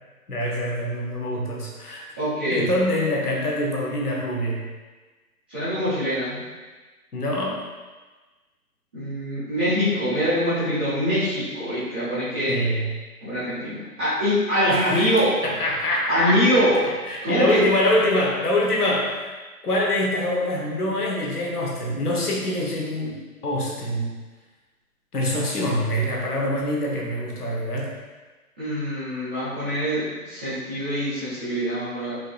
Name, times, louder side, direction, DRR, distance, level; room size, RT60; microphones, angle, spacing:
voice 1, 0.3-2.1 2.5-4.7 7.1-7.6 12.5-12.9 14.7-15.1 15.4-16.4 17.1-19.3 19.6-23.2 23.4-24.1 25.1-27.9, left 1 dB, 80° left, -2 dB, 1.1 m, -24 dB
voice 2, 2.2-2.7 5.5-6.4 8.9-12.6 13.2-15.3 16.1-16.8 17.2-17.6 28.6-32.2, equal, 5° right, -19 dB, 0.5 m, -24 dB
4.9 x 2.8 x 2.3 m, 1.3 s
figure-of-eight pair, 135°, 45 cm